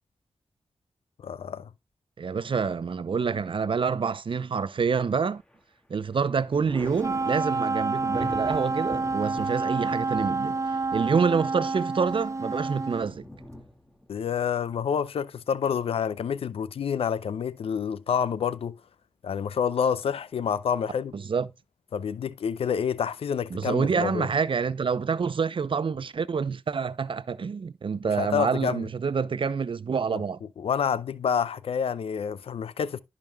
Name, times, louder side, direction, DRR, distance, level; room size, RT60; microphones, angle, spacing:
voice 1, 1.2-1.7 14.1-18.8 19.2-21.1 21.9-24.3 28.2-28.9 30.6-33.0, left 7 dB, 85° left, 0.5 m, -28 dB
voice 2, 2.2-5.4 5.9-13.3 21.1-21.5 23.5-30.4, right 5 dB, 65° right, 0.6 m, -27 dB
Thunder, 4.8-5.6 6.0-15.6 17.1-17.9, equal, 10° left, 2.2 m, -44 dB
Wind instrument woodwind instrument, 7.0-13.1, right 3 dB, 30° right, 0.9 m, -28 dB
13.5 x 5.3 x 2.3 m
cardioid pair, 40°, 10 cm